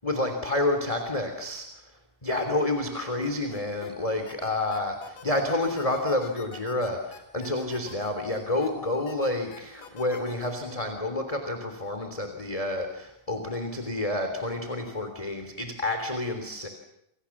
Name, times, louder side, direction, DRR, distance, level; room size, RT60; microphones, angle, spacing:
voice 1, 0.0-1.8 2.2-16.7, left 2 dB, 10° left, 5 dB, 2.9 m, -29 dB
sound 1, 3.2-3.9 4.3-8.7 9.1-10.5, left 6 dB, 75° left, 4.8 m, -46 dB
29.5 x 27.5 x 7.3 m, 0.80 s
omnidirectional pair, 3.9 m